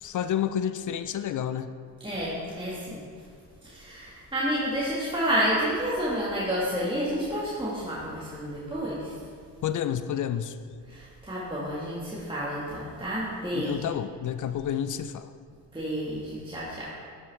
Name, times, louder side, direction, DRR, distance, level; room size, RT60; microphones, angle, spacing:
voice 1, 0.0-1.7 9.6-10.6 13.5-15.3, left 9 dB, 45° left, 12 dB, 0.4 m, -29 dB
voice 2, 2.0-3.0 3.6-9.1 10.9-13.8 15.7-16.9, equal, 10° right, -8 dB, 1.9 m, -30 dB
9.9 x 6.2 x 3.5 m, 2.2 s
supercardioid pair, 60°, 46 cm